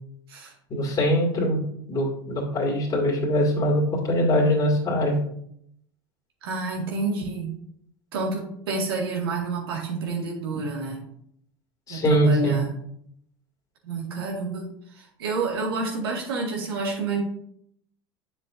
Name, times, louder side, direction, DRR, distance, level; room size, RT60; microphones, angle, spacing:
voice 1, 0.7-1.6 1.9-5.2 11.9-12.6, equal, 35° left, -3 dB, 2.4 m, -22 dB
voice 2, 6.4-7.6 8.1-11.0 11.9-12.7 13.8-17.2, right 3 dB, 90° right, -1 dB, 2.1 m, -29 dB
7.5 x 6.8 x 2.7 m, 0.70 s
hypercardioid pair, 95°, 12 cm